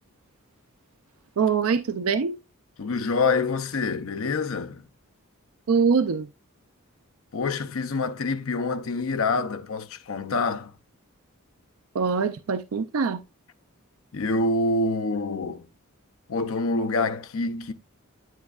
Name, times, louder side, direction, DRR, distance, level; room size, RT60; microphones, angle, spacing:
voice 1, 1.4-2.4 5.7-6.3 11.9-13.2, right 5 dB, 75° right, 0.4 m, -23 dB
voice 2, 2.8-4.8 7.3-10.7 14.1-15.7 16.3-17.7, left 3 dB, 65° left, 0.6 m, -26 dB
8.0 x 7.4 x 2.4 m
head